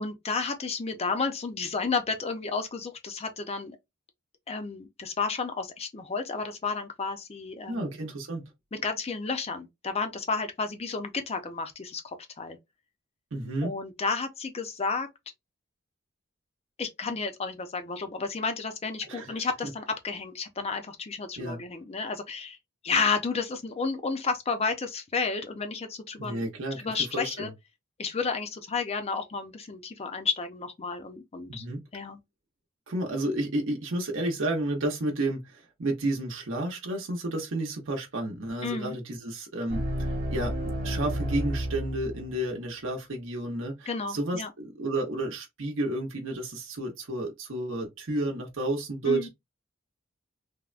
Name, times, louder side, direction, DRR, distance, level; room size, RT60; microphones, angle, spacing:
voice 1, 0.0-3.8 4.5-7.8 8.7-12.6 13.6-15.1 16.8-22.6 22.8-26.4 26.8-27.5 28.0-31.6 31.9-32.2 38.6-39.0 43.9-44.5 49.1-49.3, left 4 dB, 30° left, 0.5 m, -31 dB
voice 2, 7.7-8.5 13.3-13.7 19.1-19.4 21.4-21.6 26.2-27.5 31.5-31.8 32.9-49.3, right 1 dB, 75° right, 0.8 m, -31 dB
sound 1, 39.7-42.5, equal, 50° right, 1.0 m, -31 dB
3.4 x 2.1 x 2.4 m
head